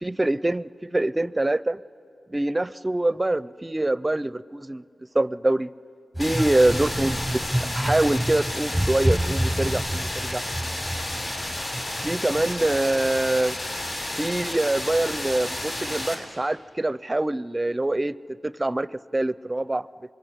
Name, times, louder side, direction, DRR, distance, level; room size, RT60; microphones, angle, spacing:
voice 1, 0.0-1.8 2.3-4.8 5.1-5.7 6.2-7.4 7.7-10.4 12.0-13.6 14.2-18.1 18.4-19.9, right 2 dB, 25° right, 19 dB, 0.6 m, -24 dB
sound 1, 6.1-13.7, right 1 dB, ahead, 0.9 m, -29 dB
sound 2, 6.2-16.1, left 1 dB, 50° left, 5.5 m, -31 dB
25.5 x 21.0 x 9.9 m, 2.5 s
cardioid pair, 50°, 0 cm